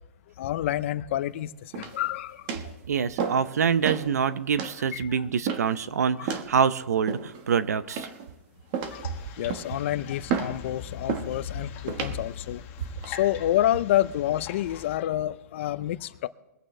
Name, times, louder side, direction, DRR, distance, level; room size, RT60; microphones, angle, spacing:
voice 1, 0.4-2.7 4.9-5.3 6.2-6.3 8.9-9.1 9.4-12.6 13.0-16.3, left 13 dB, 50° left, 0.6 m, -28 dB
sound 1, 1.7-2.1 2.5-2.7 3.2-3.5 3.8-4.1 4.6-4.8 5.5-5.8 6.3-6.5 7.1-7.5 8.0-8.3 8.7-9.1 9.5-9.8 10.3-10.6 11.1-11.3 11.9-12.2 12.8-13.1, right 6 dB, 35° right, 1.4 m, -31 dB
voice 2, 2.9-8.1, right 7 dB, 85° right, 0.7 m, -25 dB
sound 2, 8.8-15.0, left 7 dB, 25° left, 1.5 m, -42 dB
23.5 x 8.8 x 3.3 m
hypercardioid pair, 150°, 8 cm